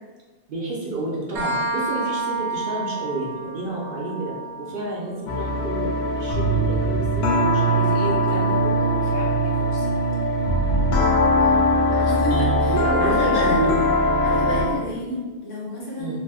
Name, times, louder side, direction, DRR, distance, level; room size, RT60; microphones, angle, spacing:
voice 1, 0.5-4.3 4.6-5.9 6.2-9.9 12.7-13.8 16.0-16.2, right 2 dB, 55° right, -4 dB, 0.7 m, -30 dB
sound 1, 1.4-8.8, right 3 dB, 85° right, 0.9 m, -32 dB
sound 2, 5.3-14.7, equal, 70° left, 0.8 m, -21 dB
voice 2, 11.9-12.7 13.0-13.6 14.2-16.2, left 1 dB, 85° left, -4 dB, 1.2 m, -30 dB
2.9 x 2.2 x 3.3 m, 1.3 s
omnidirectional pair, 1.2 m